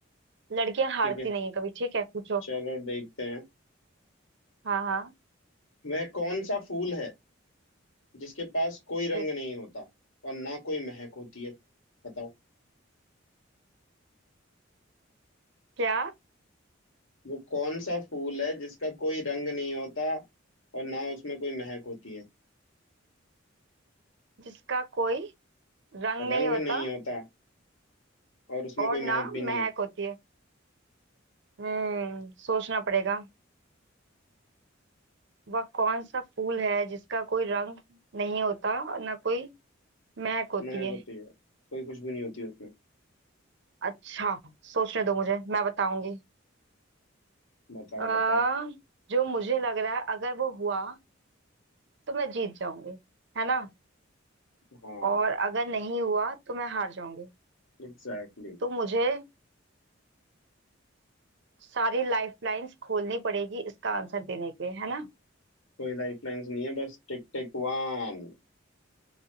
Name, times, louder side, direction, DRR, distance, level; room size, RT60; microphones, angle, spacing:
voice 1, 0.5-2.4 4.6-5.1 9.1-9.2 15.8-16.1 24.7-25.3 25.9-26.9 28.8-30.1 31.6-33.3 35.5-39.5 40.2-41.0 43.8-44.4 44.6-46.2 48.0-48.8 49.1-51.0 52.1-53.0 53.3-53.7 55.0-57.3 58.6-59.2 61.7-65.1, right 4 dB, 60° right, 0.7 m, -30 dB
voice 2, 2.5-3.4 5.8-7.1 8.1-9.9 10.2-11.5 12.0-12.3 17.2-20.2 20.7-22.2 26.2-27.2 28.5-29.7 40.6-41.3 41.7-42.7 47.7-48.4 54.8-55.1 57.8-58.6 65.8-68.3, left 1 dB, 85° left, 1.7 m, -34 dB
2.9 x 2.9 x 2.8 m
head